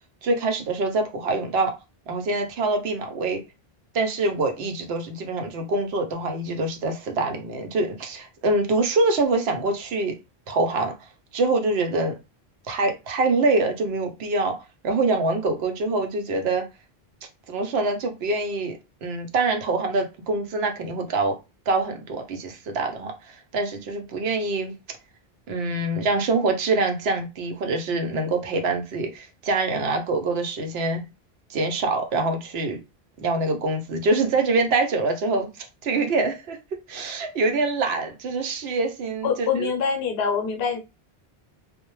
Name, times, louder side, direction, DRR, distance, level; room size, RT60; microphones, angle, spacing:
voice 1, 0.2-1.7 2.1-3.4 3.9-10.1 10.5-11.1 11.3-12.2 12.7-14.6 14.8-16.7 17.5-21.4 21.7-24.8 25.5-31.0 31.5-32.8 33.2-36.6 36.9-39.7, right 3 dB, 80° right, 0.8 m, -25 dB
voice 2, 39.2-40.8, left 6 dB, 75° left, 0.8 m, -24 dB
2.1 x 2.1 x 3.0 m
omnidirectional pair, 1.0 m